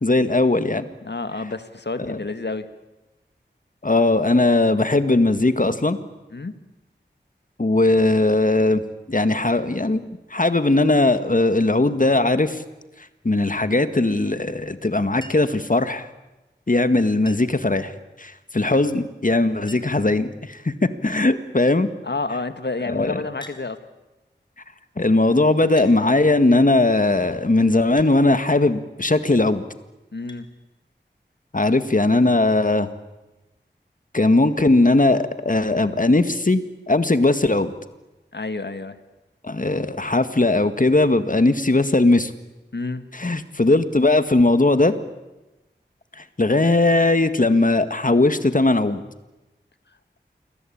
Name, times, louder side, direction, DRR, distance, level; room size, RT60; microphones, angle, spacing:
voice 1, 0.0-0.9 2.0-2.2 3.8-6.0 7.6-8.8 9.1-12.6 13.2-16.1 16.7-17.9 18.2-21.9 22.9-23.2 25.0-29.6 31.5-32.9 34.1-36.6 36.9-37.7 39.4-42.3 43.1-44.9 46.2-49.0, left 2 dB, 45° left, 10 dB, 1.8 m, -19 dB
voice 2, 1.0-2.7 6.3-6.5 22.0-23.8 30.1-30.5 38.3-39.0 42.7-43.1, left 3 dB, 65° left, 10 dB, 1.9 m, -29 dB
Chink clink, 15.2-15.6 17.2-17.7 19.0-19.1 19.3-19.4 19.7-20.1 20.9-21.3 23.4-23.6 24.7-24.8 25.8-26.0 28.0-28.2 30.3-30.5 31.9-32.0, equal, 25° left, 3.6 m, -44 dB
28.5 x 22.0 x 8.7 m, 1.0 s
wide cardioid pair, 50°, 19 cm